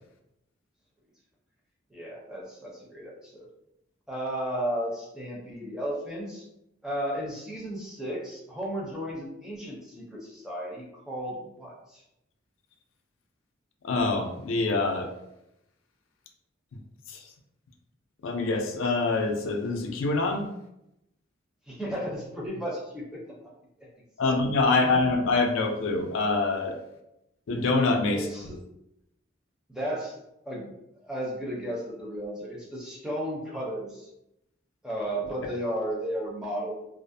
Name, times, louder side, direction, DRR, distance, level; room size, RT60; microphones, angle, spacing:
voice 1, 1.9-3.5 4.1-6.4 6.8-12.0 21.7-23.2 23.8-23.9 24.2-24.3 24.7-25.1 28.1-28.6 29.7-30.2 30.4-30.7 31.0-34.1 34.8-36.7, equal, 5° right, -4 dB, 0.5 m, -34 dB
voice 2, 13.8-15.1 17.1-17.2 18.2-20.5 24.2-26.7 27.5-28.2, left 3 dB, 85° left, 3 dB, 0.4 m, -25 dB
2.4 x 2.0 x 2.5 m, 0.83 s
head